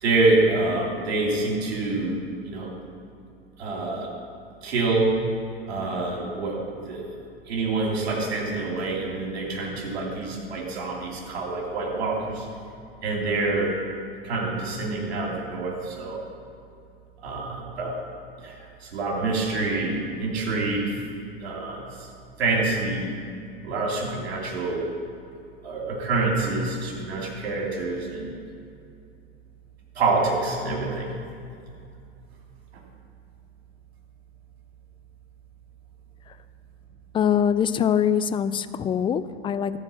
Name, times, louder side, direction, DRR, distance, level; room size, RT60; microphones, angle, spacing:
voice 1, 0.0-2.7 3.6-4.1 4.6-5.2 5.7-6.6 6.8-7.1 7.5-12.4 13.0-13.7 14.2-16.2 17.2-18.0 18.4-20.9 21.4-22.1 22.4-23.1 23.6-24.9 25.6-28.3 29.9-31.1, right 3 dB, 85° right, -2 dB, 2.9 m, -26 dB
voice 2, 37.1-39.8, left 8 dB, 15° left, 13 dB, 0.3 m, -23 dB
14.5 x 4.8 x 7.6 m, 2.5 s
hypercardioid pair, 105°, 31 cm